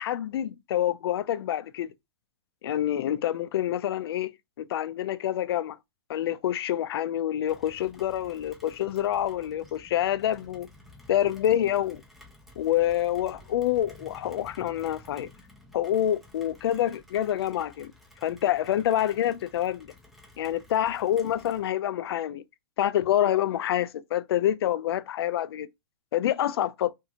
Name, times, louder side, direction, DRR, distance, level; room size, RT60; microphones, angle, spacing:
voice 1, 0.0-1.9 2.6-4.3 4.6-5.8 6.1-10.7 11.1-12.0 12.6-15.3 15.7-17.9 18.2-19.9 20.4-22.4 22.8-25.7 26.1-26.9, left 11 dB, 70° left, 0.4 m, -27 dB
Rain, 7.5-21.7, left 2 dB, ahead, 0.4 m, -53 dB
2.9 x 2.6 x 2.3 m
hypercardioid pair, 160°, 13 cm